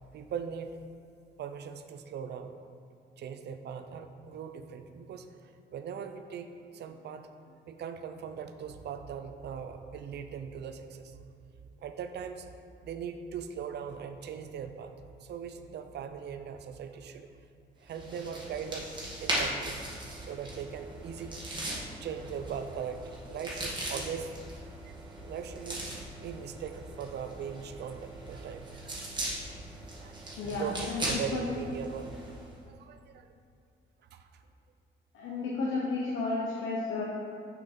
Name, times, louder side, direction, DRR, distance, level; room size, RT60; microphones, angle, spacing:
voice 1, 0.1-0.8 1.4-2.6 3.2-6.5 6.7-11.2 11.8-14.9 15.2-17.3 17.8-18.9 19.2-21.5 21.9-29.3 30.0-32.2 32.7-33.3 34.1-34.4, right 7 dB, 60° right, 8 dB, 0.5 m, -40 dB
sound 1, 17.9-32.5, right 1 dB, 20° right, 1.6 m, -39 dB
voice 2, 30.4-31.4 35.1-37.0, left 3 dB, 85° left, -5 dB, 0.9 m, -32 dB
6.0 x 5.3 x 4.3 m, 2.5 s
cardioid pair, 90°, 20 cm